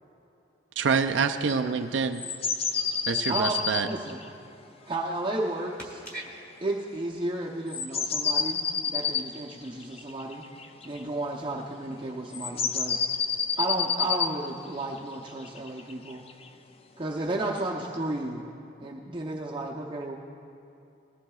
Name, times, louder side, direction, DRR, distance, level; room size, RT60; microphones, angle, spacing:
voice 1, 0.8-2.2 3.1-3.9, right 5 dB, 65° right, 6 dB, 0.4 m, -26 dB
sound 1, 2.1-4.2 7.7-11.0 12.3-14.3 15.3-16.5 17.6-17.7, left 6 dB, 30° left, 0.4 m, -29 dB
voice 2, 2.6-3.1 4.5-4.6 6.0-6.3 18.0-18.1, right 1 dB, 10° left, -4 dB, 2.1 m, -43 dB
voice 3, 3.3-3.6 3.8-4.2 4.9-5.7 6.6-10.4 10.8-13.0 13.6-16.2 17.0-18.4 18.8-20.1, right 2 dB, 25° right, -3 dB, 0.7 m, -32 dB
19.5 x 14.0 x 2.3 m, 2.8 s
head